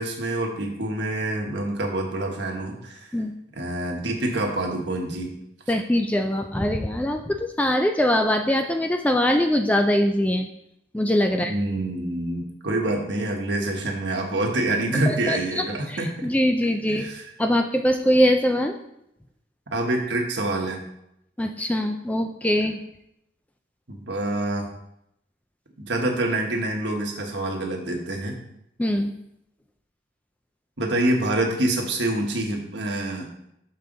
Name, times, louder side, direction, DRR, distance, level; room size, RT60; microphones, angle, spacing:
voice 1, 0.0-3.1 3.5-5.3 11.3-16.3 16.9-17.3 19.7-20.8 23.9-24.7 25.8-28.4 30.8-33.3, right 1 dB, 65° right, 1 dB, 1.4 m, -26 dB
voice 2, 5.7-10.5 10.9-11.5 15.1-17.1 17.4-18.7 21.4-22.8 28.8-29.1, equal, 5° left, 5 dB, 0.3 m, -22 dB
6.5 x 5.7 x 3.9 m, 0.78 s
head